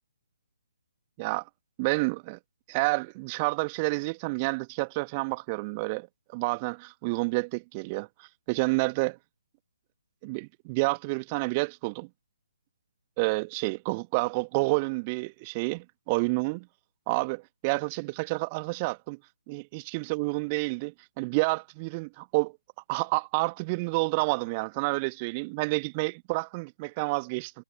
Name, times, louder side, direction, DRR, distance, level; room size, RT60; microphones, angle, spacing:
voice 1, 1.8-2.4 2.7-9.2 10.2-12.1 13.2-16.7 17.1-19.2 19.5-22.5 22.9-27.5, right 27 dB, 25° right, 1.3 m, -29 dB
figure-of-eight pair, 135°, 0 cm